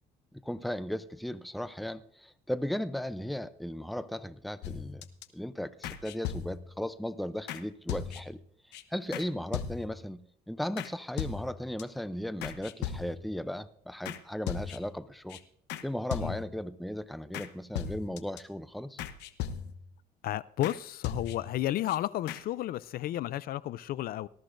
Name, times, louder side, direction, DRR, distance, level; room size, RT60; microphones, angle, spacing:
voice 1, 0.3-5.1 5.3-8.4 8.9-15.4 15.8-19.0, equal, ahead, 0.5 m, -36 dB
sound 1, 4.6-5.2 5.8-6.8 7.5-7.6 7.9-8.4 8.7-8.8 9.1-9.3 9.5-10.1 10.8-10.9 11.2-11.8 12.4-13.3 14.0-14.2 14.5-15.0 15.3-15.4 15.7-15.8 16.1-16.6 17.3-17.5 17.7-18.4 19.0-19.9 20.6-20.8 21.0-21.6 21.9-22.0 22.3-22.4, left 9 dB, 85° left, 0.9 m, -38 dB
voice 2, 20.2-24.3, left 14 dB, 60° left, 0.4 m, -32 dB
19.0 x 13.5 x 2.6 m
cardioid pair, 110°, 17 cm